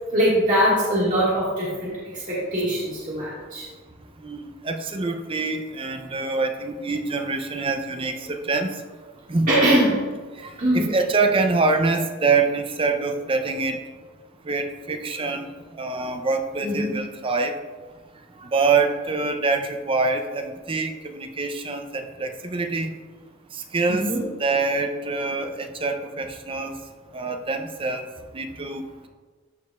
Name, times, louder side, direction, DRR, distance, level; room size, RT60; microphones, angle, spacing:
voice 1, 0.1-3.6 9.5-10.0 10.6-10.9 16.6-17.0 23.9-24.2, equal, 45° right, -8 dB, 1.7 m, -22 dB
voice 2, 4.2-8.7 9.3-9.5 10.4-13.8 14.5-15.5 15.8-17.5 18.4-22.9 23.7-24.1 24.4-26.8 27.1-28.0 28.3-28.8, right 3 dB, 25° right, 6 dB, 0.5 m, -25 dB
13.0 x 5.2 x 2.3 m, 1.4 s
head